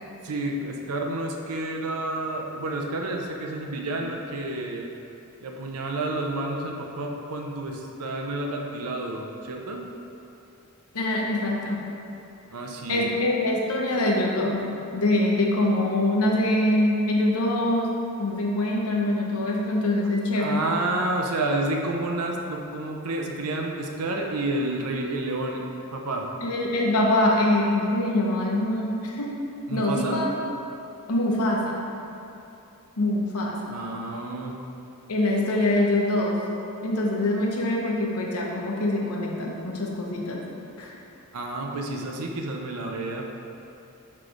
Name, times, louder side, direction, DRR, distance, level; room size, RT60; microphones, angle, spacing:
voice 1, 0.2-4.9 5.4-9.9 12.5-13.2 20.4-25.7 25.9-26.3 29.7-30.2 33.7-34.6 41.3-43.2, right 2 dB, 85° right, 1 dB, 0.6 m, -30 dB
voice 2, 10.9-11.8 12.9-17.9 18.2-20.6 26.4-29.3 29.7-30.3 31.1-31.8 33.0-33.8 35.1-36.4 36.8-40.4 40.8-41.0, left 1 dB, 80° left, -2 dB, 0.9 m, -24 dB
6.1 x 3.2 x 5.0 m, 2.7 s
head